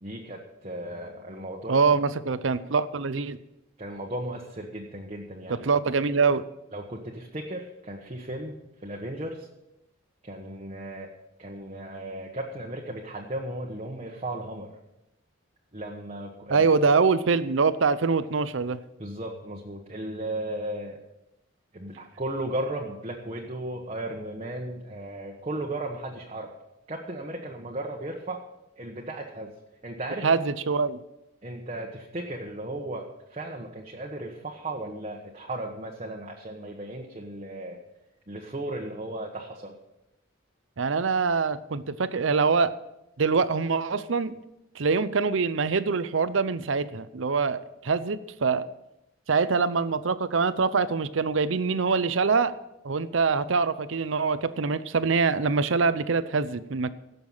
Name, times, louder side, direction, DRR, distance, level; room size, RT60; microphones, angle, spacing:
voice 1, 0.0-1.8 3.8-5.7 6.7-9.5 10.2-11.1 11.4-14.7 15.7-16.7 19.0-21.0 21.7-26.5 26.9-28.4 28.8-29.5 29.8-30.4 31.4-37.8 38.3-39.7, right 1 dB, 35° right, -1 dB, 1.2 m, -35 dB
voice 2, 1.7-3.4 5.5-6.4 16.5-18.8 30.2-31.0 40.8-42.7 43.2-44.3 44.8-48.7 49.3-52.5 52.8-56.9, right 4 dB, 75° right, 15 dB, 0.6 m, -24 dB
17.0 x 6.8 x 5.6 m, 0.88 s
head